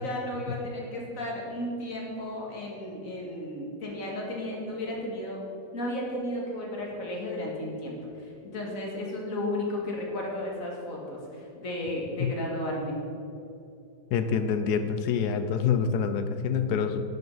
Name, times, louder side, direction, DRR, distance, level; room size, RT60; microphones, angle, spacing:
voice 1, 0.0-5.4 5.7-13.0, left 1 dB, 45° left, -2 dB, 2.1 m, -34 dB
voice 2, 14.1-17.0, left 6 dB, 70° left, 9 dB, 1.1 m, -26 dB
10.5 x 6.0 x 5.5 m, 2.7 s
omnidirectional pair, 2.1 m